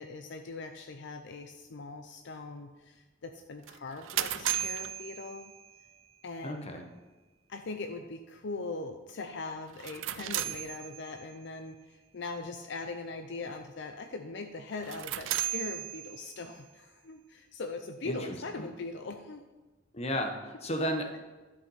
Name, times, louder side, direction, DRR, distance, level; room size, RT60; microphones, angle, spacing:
voice 1, 0.0-5.5 6.2-6.7 7.5-19.4, left 3 dB, 65° left, 6 dB, 0.6 m, -41 dB
sound 1, 3.7-5.9 9.7-11.4 14.7-16.5, right 12 dB, 85° right, 0.5 m, -35 dB
voice 2, 6.4-6.8 18.0-18.7 19.9-21.2, equal, 35° left, 4 dB, 1.1 m, -34 dB
12.0 x 5.4 x 5.6 m, 1.2 s
head